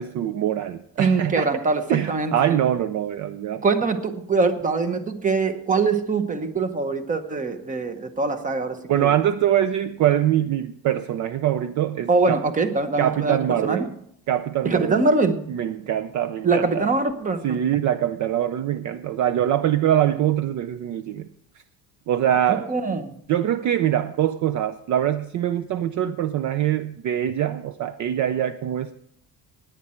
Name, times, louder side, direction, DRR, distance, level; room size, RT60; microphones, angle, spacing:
voice 1, 0.0-1.5 1.9-3.6 8.9-12.4 13.0-13.9 14.3-15.0 15.5-16.9 17.4-21.3 22.1-22.7 23.3-28.9, right 11 dB, 50° right, 0.5 m, -23 dB
voice 2, 1.0-1.8 2.1-2.3 3.6-9.1 12.1-13.9 14.6-15.4 16.4-17.7 22.3-23.1, right 4 dB, 20° right, 0.9 m, -23 dB
17.0 x 9.7 x 4.4 m
cardioid pair, 165°, 39 cm